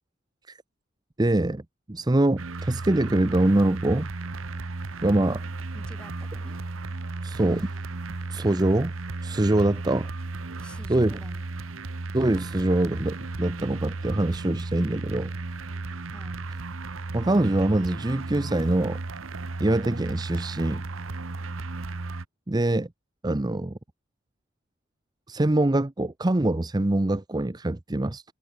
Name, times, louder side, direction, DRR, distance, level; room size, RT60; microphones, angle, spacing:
voice 1, 1.2-1.6 1.9-4.1 5.0-5.4 7.2-7.7 8.3-8.9 9.2-10.1 10.9-11.2 12.1-15.3 17.1-19.0 19.6-20.8 22.5-22.9 23.2-23.8 25.3-28.2, right 1 dB, 20° right, 0.7 m, -24 dB
sound 1, 2.4-22.2, right 3 dB, 80° right, 1.1 m, -35 dB
voice 2, 5.0-5.4 5.7-6.6 10.6-11.5 16.0-16.5, equal, 5° left, 4.6 m, -48 dB
head